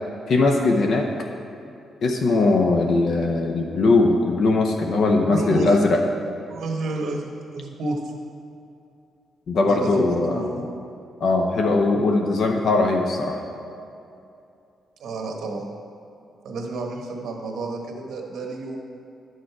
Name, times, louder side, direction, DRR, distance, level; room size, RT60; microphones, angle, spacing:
voice 1, 0.3-1.1 2.0-6.0 9.5-10.4 11.2-13.4, left 3 dB, 55° left, 2 dB, 0.6 m, -20 dB
voice 2, 5.2-5.8 6.5-8.0 9.6-10.7 15.0-15.6 16.4-18.8, right 2 dB, 70° right, 1 dB, 1.2 m, -30 dB
11.0 x 6.4 x 4.6 m, 2.7 s
wide cardioid pair, 165°, 0 cm